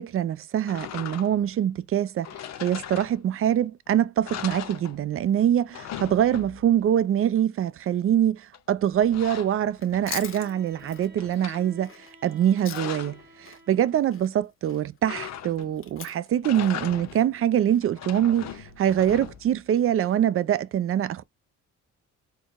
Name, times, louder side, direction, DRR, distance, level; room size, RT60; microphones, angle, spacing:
voice 1, 0.0-2.3 2.6-11.9 12.2-21.2, right 10 dB, 45° right, 0.4 m, -24 dB
sound 1, 0.7-1.5 2.2-3.5 3.9-4.0 4.2-5.3 5.6-6.8 8.5-10.3 10.7-11.6 12.3-13.3 15.0-15.8 16.3-17.3 17.8-19.6, left 10 dB, 60° left, 0.7 m, -39 dB
Chewing mastication, 9.7-13.2 13.4-17.8, left 7 dB, 45° left, 1.1 m, -42 dB
Bowed string instrument, 9.9-14.2, equal, 25° right, 2.1 m, -52 dB
4.4 x 3.0 x 2.4 m
cardioid pair, 90°, 30 cm